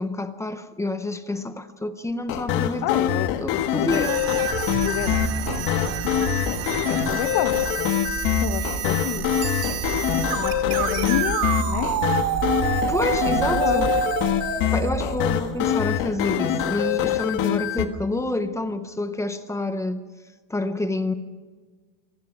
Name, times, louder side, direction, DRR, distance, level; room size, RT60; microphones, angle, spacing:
voice 1, 0.0-4.3 12.8-13.9 14.7-20.0 20.5-21.1, left 2 dB, 5° left, 10 dB, 0.6 m, -28 dB
sound 1, 2.3-17.9, left 11 dB, 55° left, 1.6 m, -24 dB
voice 2, 2.8-4.1 4.8-5.3 5.6-6.3 6.9-7.9 8.4-9.3 10.1-11.9 13.5-13.8, left 13 dB, 75° left, 11 dB, 1.2 m, -29 dB
sound 2, 3.9-16.0, right 9 dB, 55° right, 2.4 m, -28 dB
Bicycle bell, 9.4-10.6 16.0-16.1, right 10 dB, 35° right, 1.3 m, -39 dB
27.5 x 18.5 x 6.0 m, 1.4 s
cardioid pair, 180°, 41 cm